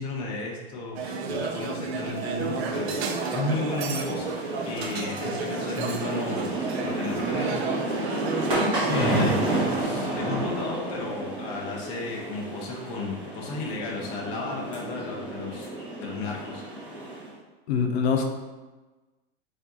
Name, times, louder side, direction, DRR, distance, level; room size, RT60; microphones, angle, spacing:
voice 1, 0.0-4.3 4.6-6.5 6.8-7.5 8.9-15.7 16.0-16.6, left 3 dB, 20° left, -2 dB, 0.3 m, -34 dB
sound 1, 0.9-9.8, right 4 dB, 80° right, 0.6 m, -31 dB
sound 2, 3.8-17.3, right 1 dB, 15° right, 0.9 m, -31 dB
voice 2, 8.8-9.4 17.7-18.2, left 5 dB, 90° left, 4 dB, 0.7 m, -25 dB
4.5 x 2.6 x 2.8 m, 1.2 s
supercardioid pair, 160°, 31 cm